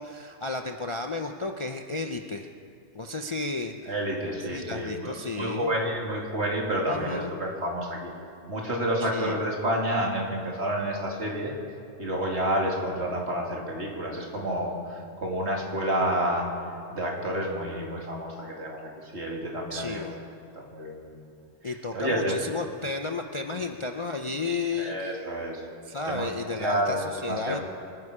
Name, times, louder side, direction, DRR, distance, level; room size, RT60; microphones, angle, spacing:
voice 1, 0.0-2.5 2.9-3.9 4.5-5.7 6.9-7.3 9.0-9.4 19.7-20.2 21.6-25.2 25.9-27.0 27.2-27.6, left 3 dB, 35° left, 4 dB, 0.5 m, -33 dB
voice 2, 3.9-8.1 8.5-11.5 12.0-16.5 16.9-20.1 20.5-21.2 21.6-22.4 24.8-25.6 26.1-26.3 26.6-27.6, equal, 65° right, -1 dB, 2.7 m, -29 dB
25.5 x 9.8 x 4.9 m, 2.3 s
omnidirectional pair, 1.2 m